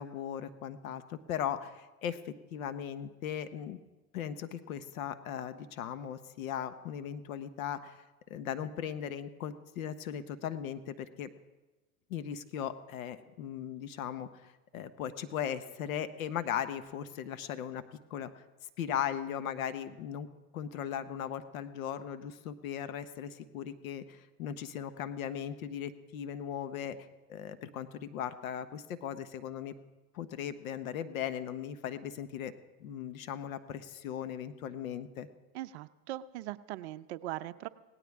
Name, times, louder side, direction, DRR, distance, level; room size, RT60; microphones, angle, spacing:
voice 1, 0.0-3.8 4.1-8.0 8.3-11.3 12.1-17.8 18.1-18.4 18.8-20.3 20.5-27.0 27.3-29.7 30.1-32.5 32.8-35.3, left 9 dB, 65° left, 11 dB, 1.1 m, -38 dB
voice 2, 35.5-37.7, right 15 dB, 50° right, 12 dB, 0.7 m, -40 dB
18.0 x 17.0 x 3.6 m, 1.1 s
hypercardioid pair, 130°, 45 cm